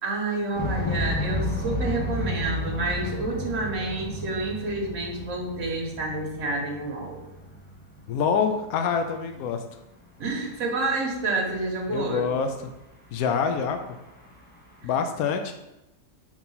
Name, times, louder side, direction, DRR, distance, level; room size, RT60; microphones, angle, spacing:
voice 1, 0.0-7.2 10.2-12.3, right 2 dB, 60° right, 0 dB, 1.5 m, -29 dB
sound 1, 0.5-8.3 8.6-8.7 9.2-9.4 10.8-10.9 11.2-11.3 11.5-11.6 11.9-12.0 12.4-12.7 13.2-14.8, left 1 dB, 10° left, 0.9 m, -32 dB
voice 2, 8.1-9.6 11.9-12.5 13.1-13.8 14.8-15.5, left 6 dB, 85° left, 6 dB, 1.0 m, -25 dB
4.5 x 3.8 x 5.5 m, 0.95 s
omnidirectional pair, 1.5 m